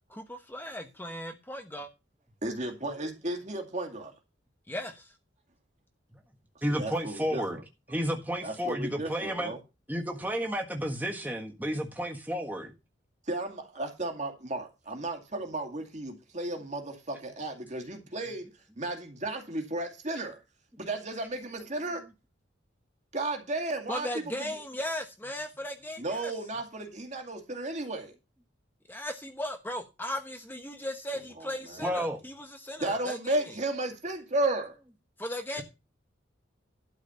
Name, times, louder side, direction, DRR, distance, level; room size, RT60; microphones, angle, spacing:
voice 1, 0.1-1.9 4.7-5.1 23.9-26.3 28.9-33.4 35.2-35.6, left 1 dB, 10° left, 1.1 m, -37 dB
voice 2, 2.4-4.1 6.7-7.6 8.4-9.6 13.3-20.4 20.8-22.0 23.1-24.1 24.4-24.6 26.0-28.1 31.4-32.0 32.8-34.8, right 2 dB, 40° right, 2.2 m, -34 dB
voice 3, 6.6-7.6 7.9-9.5 9.9-12.7 31.8-32.2 35.6-35.7, equal, 10° right, 1.5 m, -31 dB
12.0 x 4.9 x 6.9 m
head